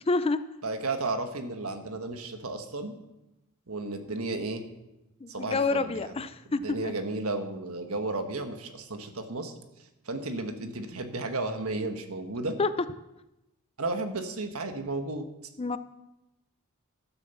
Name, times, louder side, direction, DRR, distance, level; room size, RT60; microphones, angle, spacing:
voice 1, 0.1-0.4 5.2-6.9 12.6-12.7 15.6-15.8, left 3 dB, 25° left, 13 dB, 0.4 m, -28 dB
voice 2, 0.6-2.9 3.7-4.6 5.3-6.1 6.5-9.5 10.0-12.5 13.8-15.3, right 2 dB, 70° right, 7 dB, 1.4 m, -33 dB
12.5 x 7.3 x 7.0 m, 0.95 s
head